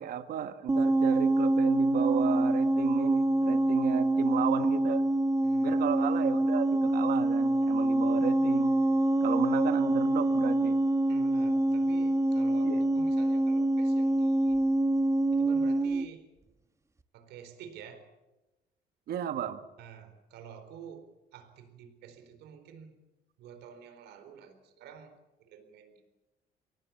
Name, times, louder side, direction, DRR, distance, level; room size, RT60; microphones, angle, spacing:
voice 1, 0.0-5.1 5.6-8.8 9.2-10.8 12.6-12.8 19.1-19.6, right 10 dB, 65° right, 9 dB, 1.8 m, -33 dB
sound 1, 0.7-16.1, right 1 dB, 15° right, 1.2 m, -26 dB
voice 2, 5.4-5.9 11.1-14.6 15.3-16.2 17.1-18.1 19.8-23.0 23.4-26.0, right 7 dB, 80° right, 9 dB, 4.2 m, -49 dB
24.0 x 18.0 x 8.6 m, 1.0 s
cardioid pair, 110°, 17 cm